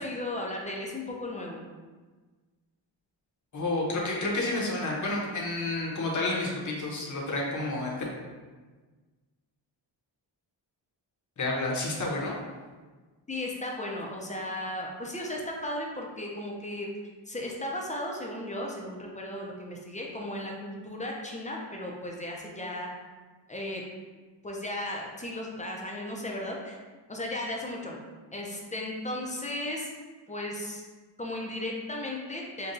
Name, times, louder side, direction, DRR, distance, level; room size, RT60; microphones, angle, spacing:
voice 1, 0.0-1.6 13.3-16.9 17.3-22.9 23.5-23.8 24.4-26.8 27.1-28.0 28.3-29.9 30.3-30.8 31.2-32.7, left 1 dB, 15° left, -1 dB, 0.5 m, -35 dB
voice 2, 3.5-8.0 11.4-12.3, left 2 dB, 40° left, -3 dB, 0.8 m, -30 dB
5.3 x 2.3 x 2.6 m, 1.4 s
wide cardioid pair, 105°, 47 cm